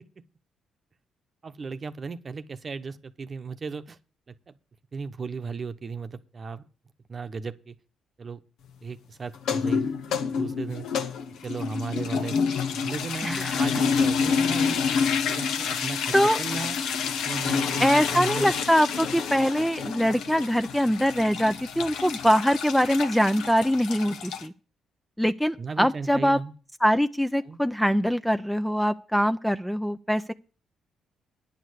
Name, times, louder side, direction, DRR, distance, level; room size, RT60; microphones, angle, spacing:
voice 1, 1.4-4.0 4.3-4.6 4.9-6.6 7.1-7.8 8.2-8.4 8.8-10.9 11.4-12.4 12.7-14.9 15.2-16.8 17.2-18.5 25.6-26.5 27.4-27.6, right 5 dB, 40° right, 10 dB, 0.9 m, -35 dB
sound 1, 9.3-24.5, left 6 dB, 80° left, 1.0 m, -28 dB
voice 2, 13.2-13.6 16.1-16.4 17.8-24.5 25.2-26.4 26.8-30.3, equal, ahead, 11 dB, 0.4 m, -23 dB
10.5 x 6.5 x 8.1 m, 0.36 s
cardioid pair, 90°, 0 cm